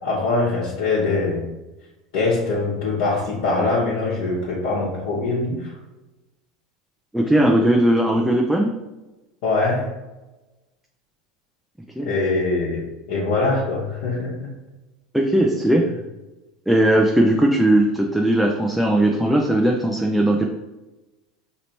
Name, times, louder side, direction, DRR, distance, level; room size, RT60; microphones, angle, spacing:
voice 1, 0.0-1.5 2.1-5.7 9.4-9.8 12.0-12.8 13.1-14.5, left 3 dB, 65° left, -7 dB, 1.1 m, -23 dB
voice 2, 7.1-8.7 12.0-12.1 15.1-15.8 16.7-20.5, right 1 dB, ahead, 0 dB, 0.5 m, -18 dB
5.0 x 2.9 x 2.9 m, 1.1 s
hypercardioid pair, 80°, 3 cm